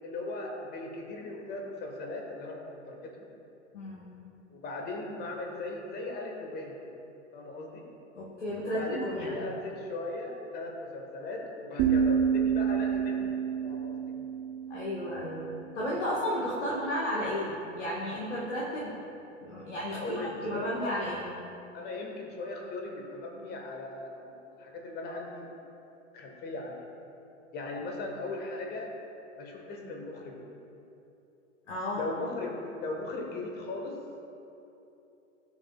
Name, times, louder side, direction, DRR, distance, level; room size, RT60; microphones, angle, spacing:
voice 1, 0.0-3.1 4.5-6.9 7.3-7.8 8.6-13.3 13.6-14.1 19.9-21.0 21.7-25.5 26.1-26.8 27.5-28.9 29.4-30.5 31.9-32.5 32.8-34.0, left 2 dB, 25° left, 1 dB, 1.4 m, -38 dB
voice 2, 3.7-4.1 8.1-9.4 14.7-15.5 15.7-18.9 19.4-21.3 31.7-32.0, equal, 70° left, -5 dB, 1.6 m, -33 dB
sound 1, 11.8-15.7, right 7 dB, 30° right, 0.7 m, -29 dB
17.0 x 6.6 x 2.4 m, 2.9 s
figure-of-eight pair, 90°, 37 cm